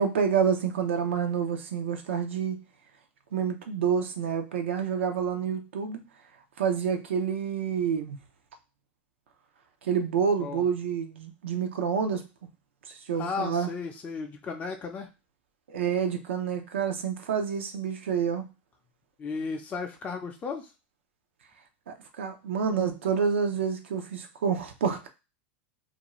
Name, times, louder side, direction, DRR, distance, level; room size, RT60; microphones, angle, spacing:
voice 1, 0.0-2.6 3.3-6.0 6.6-8.2 9.8-12.2 12.9-13.7 15.7-18.5 21.9-25.1, right 7 dB, 85° right, 5 dB, 0.5 m, -28 dB
voice 2, 13.1-15.1 19.2-20.7, left 5 dB, 25° left, 2 dB, 0.5 m, -34 dB
2.5 x 2.3 x 2.9 m, 0.28 s
hypercardioid pair, 110°, 6 cm